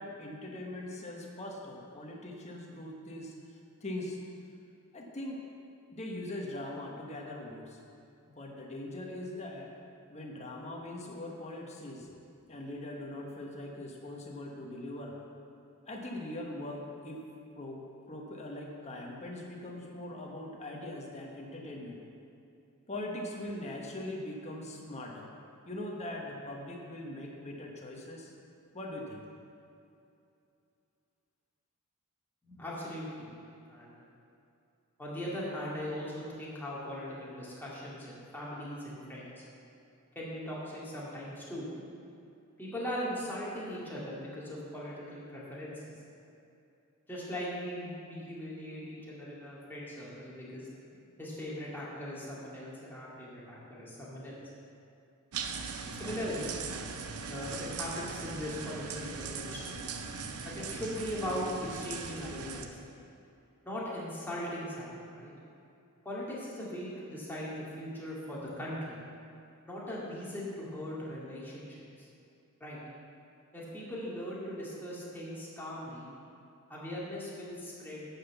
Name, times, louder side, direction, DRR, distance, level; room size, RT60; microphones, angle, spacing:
voice 1, 0.0-3.3 3.8-4.2 4.9-5.4 5.9-7.8 8.2-9.7 10.1-12.1 12.5-15.2 15.9-17.2 17.6-22.0 22.9-25.3 25.7-28.3 28.7-29.2, left 1 dB, 30° left, -1 dB, 1.3 m, -41 dB
voice 2, 32.4-33.3 33.7-34.0 35.0-39.4 40.2-41.9 42.6-45.9 47.1-50.7 51.2-54.4 55.9-56.8 57.3-59.8 60.4-62.8 63.6-65.3 66.0-69.0 69.7-72.1 72.6-72.8 73.5-76.1 76.7-78.1, equal, 10° left, -7 dB, 2.2 m, -39 dB
sound 1, 55.3-62.7, right 5 dB, 90° right, 0.7 m, -40 dB
9.4 x 5.9 x 7.1 m, 2.7 s
head